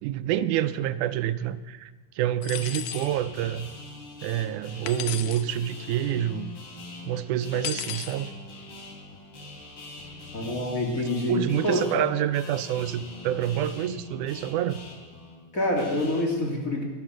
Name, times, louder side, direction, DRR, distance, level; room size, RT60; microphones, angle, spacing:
voice 1, 0.0-1.9 2.2-3.7 4.2-6.5 7.1-8.3 11.3-14.8, right 11 dB, 90° right, 12 dB, 2.1 m, -27 dB
sound 1, 2.4-3.1 4.9-5.5 7.6-8.1, left 10 dB, 80° left, 2.2 m, -34 dB
sound 2, 2.5-16.2, left 2 dB, 50° left, 3.7 m, -43 dB
voice 2, 10.3-12.1 15.5-16.8, left 1 dB, 30° left, -2 dB, 2.8 m, -26 dB
19.5 x 11.5 x 6.2 m, 1.4 s
omnidirectional pair, 3.5 m